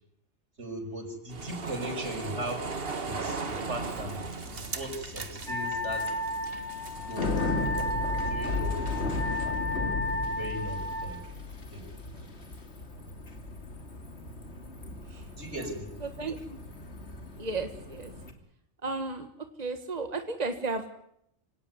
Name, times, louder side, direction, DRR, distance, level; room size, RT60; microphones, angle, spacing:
voice 1, 0.6-2.6 3.0-4.2 4.4-6.0 6.9-7.3 8.1-9.6 10.0-11.2 11.7-11.9 12.1-12.3 15.3-15.9, right 1 dB, 80° right, 4 dB, 6.0 m, -38 dB
sound 1, 1.3-9.5, right 4 dB, 55° right, 1.8 m, -39 dB
Bicycle, 3.5-18.3, left 2 dB, 70° left, 3.0 m, -37 dB
Wind instrument woodwind instrument, 5.5-11.1, left 2 dB, 45° left, 7.1 m, -33 dB
voice 2, 16.0-16.6 17.4-18.1 18.8-19.3 19.6-20.9, right 3 dB, 35° right, 7 dB, 1.7 m, -34 dB
26.0 x 17.5 x 9.7 m, 0.76 s
omnidirectional pair, 1.2 m